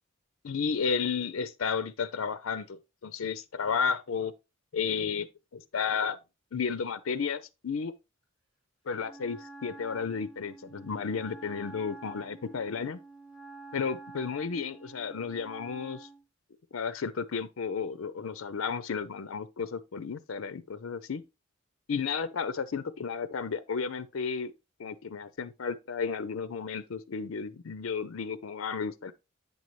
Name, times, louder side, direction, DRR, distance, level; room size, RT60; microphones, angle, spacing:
voice 1, 0.4-4.3 4.7-6.2 6.5-7.9 8.9-13.0 13.7-16.1 16.7-21.2 21.9-24.5 24.8-29.1, left 5 dB, 70° left, 0.5 m, -33 dB
Wind instrument woodwind instrument, 9.0-16.2, right 3 dB, 30° right, 4.5 m, -48 dB
8.3 x 5.4 x 3.1 m
head